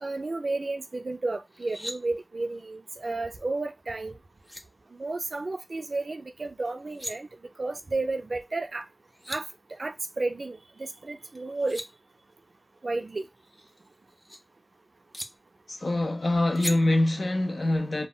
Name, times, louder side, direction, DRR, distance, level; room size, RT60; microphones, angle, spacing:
voice 1, 0.0-4.2 5.0-7.3 7.6-8.8 9.3-9.5 9.8-11.8 12.8-13.3, right 2 dB, 75° right, 0.3 m, -32 dB
sound 1, 1.5-2.0 4.0-4.1 4.4-4.6 6.7-7.1 8.8-8.9 9.1-9.4 11.3-11.9 13.4-14.4 15.1-15.3 16.6-16.8, equal, 15° left, 0.5 m, -38 dB
voice 2, 15.7-18.1, left 1 dB, 85° left, 0.5 m, -24 dB
2.2 x 2.1 x 3.7 m
wide cardioid pair, 55°, 0 cm